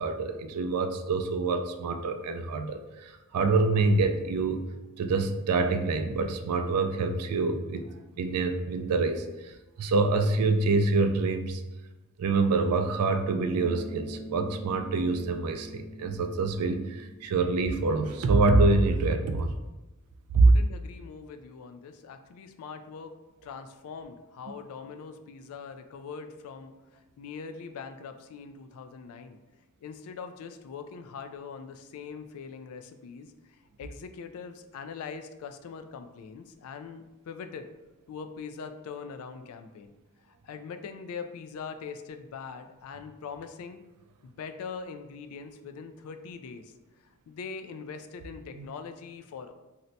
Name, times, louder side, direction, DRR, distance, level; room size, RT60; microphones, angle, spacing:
voice 1, 0.0-4.6 5.0-7.9 8.2-9.5 9.8-11.6 12.2-19.5 20.3-20.5 48.6-48.7, right 3 dB, 85° right, 7 dB, 0.4 m, -26 dB
Bass guitar, 13.5-17.9, equal, 10° left, 0.5 m, -44 dB
voice 2, 20.4-23.1 23.4-29.4 29.8-37.7 38.1-39.9 40.4-43.8 44.2-46.7 47.3-49.5, left 5 dB, 70° left, 8 dB, 0.3 m, -42 dB
2.7 x 2.1 x 3.9 m, 1.1 s
head